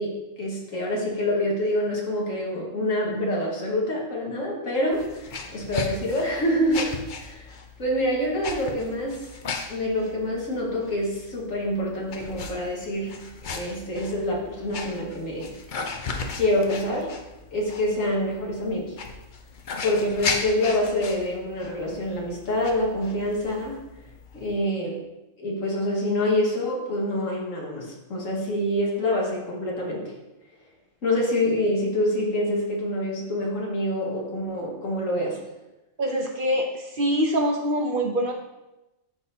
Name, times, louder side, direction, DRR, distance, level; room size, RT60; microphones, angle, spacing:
voice 1, 0.0-7.5 7.8-9.3 9.7-15.5 16.3-17.1 17.5-18.9 19.8-23.8 24.3-25.0 25.4-30.1 31.0-35.4, left 1 dB, 80° left, -2 dB, 1.9 m, -26 dB
sound 1, 4.9-24.6, left 4 dB, 50° left, 0.7 m, -37 dB
voice 2, 36.0-38.3, equal, 50° right, 2 dB, 0.7 m, -24 dB
11.5 x 4.1 x 2.7 m, 0.98 s
omnidirectional pair, 1.4 m